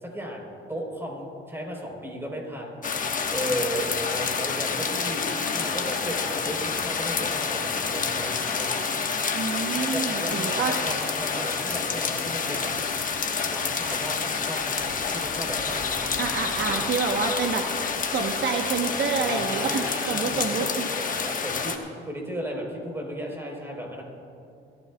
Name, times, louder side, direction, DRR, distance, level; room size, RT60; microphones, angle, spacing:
voice 1, 0.0-2.8 3.3-8.8 9.7-12.7 13.5-16.9 19.2-20.7 21.2-21.7 22.1-24.0, equal, 10° right, 0 dB, 3.8 m, -35 dB
sound 1, 2.8-21.8, left 5 dB, 40° left, 1.2 m, -28 dB
voice 2, 9.3-10.7 16.2-20.9, right 5 dB, 60° right, 3 dB, 1.0 m, -28 dB
sound 2, 9.8-9.9 10.3-11.0 11.4-11.9 12.2-13.8 14.1-15.8 16.0-17.3, left 2 dB, 5° left, 1.8 m, -41 dB
23.5 x 14.5 x 2.3 m, 2.7 s
cardioid pair, 90°, 20 cm